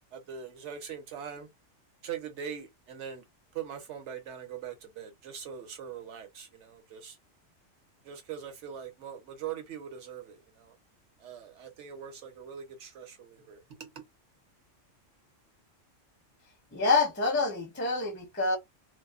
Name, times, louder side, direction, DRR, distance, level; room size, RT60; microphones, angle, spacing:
voice 1, 0.1-1.5 2.0-3.2 3.5-7.2 8.0-10.8 11.2-14.0, right 8 dB, 70° right, 1.1 m, -42 dB
voice 2, 16.7-18.6, left 3 dB, 15° left, 0.4 m, -27 dB
2.6 x 2.0 x 2.4 m
omnidirectional pair, 1.3 m